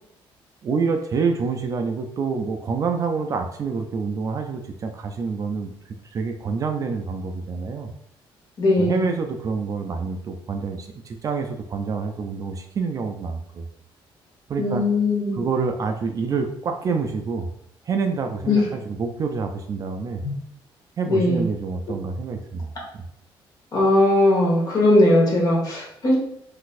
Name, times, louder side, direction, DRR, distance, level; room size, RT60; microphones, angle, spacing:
voice 1, 0.6-5.7 6.1-7.9 8.8-13.6 14.5-14.8 15.3-17.5 17.9-20.2 21.0-23.0, right 5 dB, 40° right, 5 dB, 0.3 m, -27 dB
voice 2, 8.6-9.0 14.6-15.4 18.5-18.7 20.2-20.3 21.1-21.4 23.7-26.2, left 1 dB, 45° left, -3 dB, 1.3 m, -19 dB
3.9 x 2.5 x 2.4 m, 0.70 s
cardioid pair, 135°, 9 cm